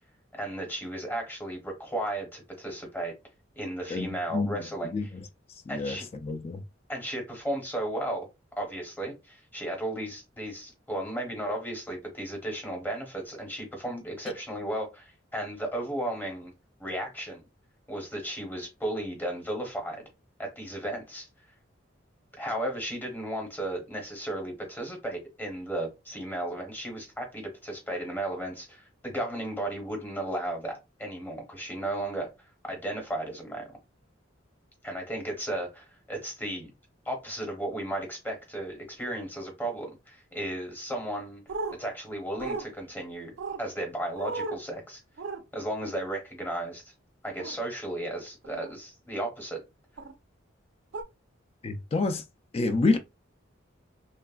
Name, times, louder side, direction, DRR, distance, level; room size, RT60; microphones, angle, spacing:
voice 1, 0.3-3.1 3.5-5.1 5.7-6.1 6.9-8.3 8.6-16.5 16.8-17.4 17.9-20.0 20.4-21.3 22.3-32.3 32.6-33.7 34.8-36.7 37.0-41.4 41.8-45.0 45.5-46.8 47.2-49.6, right 1 dB, 10° left, 0.9 m, -34 dB
voice 2, 3.9-4.5 4.9-5.0 5.7-6.0 6.2-6.6 51.6-52.2 52.5-53.0, left 3 dB, 30° left, 0.3 m, -27 dB
sound 1, 41.5-41.8 42.4-42.6 43.4-43.6 44.2-44.6 45.2-45.4 47.4-47.6 48.4-48.7 50.0-50.1 50.9-51.0, right 3 dB, 75° right, 0.5 m, -34 dB
3.0 x 2.3 x 2.3 m
head